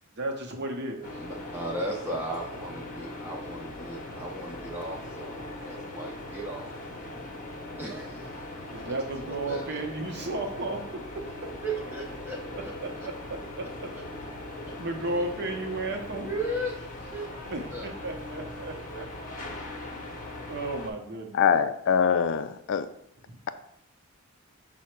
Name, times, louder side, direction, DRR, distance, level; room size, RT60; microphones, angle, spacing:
voice 1, 0.2-1.1 8.7-10.9 11.1-11.5 12.8-13.9 14.8-16.3 17.4-19.1 20.5-21.4, right 2 dB, 50° right, 2 dB, 0.7 m, -34 dB
sound 1, 1.0-20.9, left 1 dB, 40° left, 0.7 m, -40 dB
voice 2, 1.2-6.7 7.8-8.3 9.2-9.7 11.6-12.7 14.7-15.2 16.2-17.8, right 1 dB, 10° right, -2 dB, 0.5 m, -36 dB
voice 3, 21.3-22.9, left 7 dB, 60° left, 11 dB, 0.3 m, -23 dB
5.7 x 2.1 x 4.4 m, 0.73 s
head